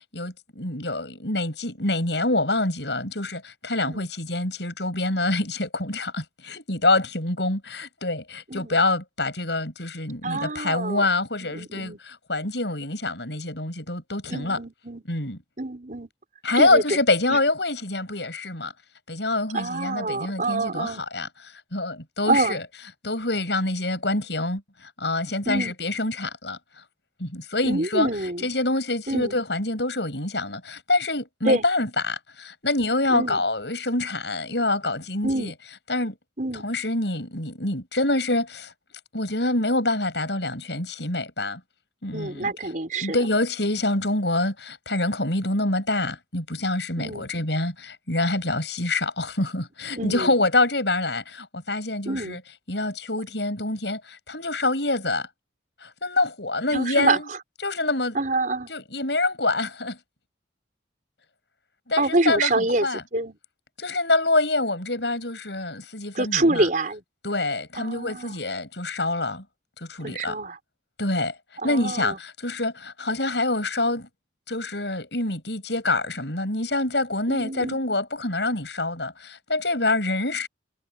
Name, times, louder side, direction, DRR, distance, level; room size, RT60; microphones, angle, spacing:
voice 1, 0.1-14.6 15.1-15.4 16.4-18.7 19.1-21.3 21.7-22.6 23.0-26.6 27.2-28.1 28.4-35.5 35.9-36.1 36.6-38.7 39.1-41.6 42.0-42.5 43.0-52.4 52.7-55.3 55.8-57.3 57.6-58.2 58.7-60.0 61.9-63.0 63.8-66.6 67.2-69.4 69.8-70.3 71.0-71.3 71.6-74.1 74.5-80.5, left 2 dB, 65° left, 7.9 m, -26 dB
voice 2, 10.2-11.1 11.4-12.0 14.3-15.0 15.6-16.1 16.6-17.0 17.3-17.4 19.5-21.0 22.3-22.6 25.4-25.7 27.6-28.5 29.1-29.4 31.4-31.6 33.1-33.4 35.2-35.5 36.4-36.7 42.1-43.3 47.0-47.3 50.0-50.3 52.0-52.4 56.7-57.4 58.1-58.7 62.0-63.4 66.1-67.0 67.7-68.4 70.0-70.6 71.6-72.2 77.3-77.8, right 2 dB, 45° right, 5.0 m, -26 dB
head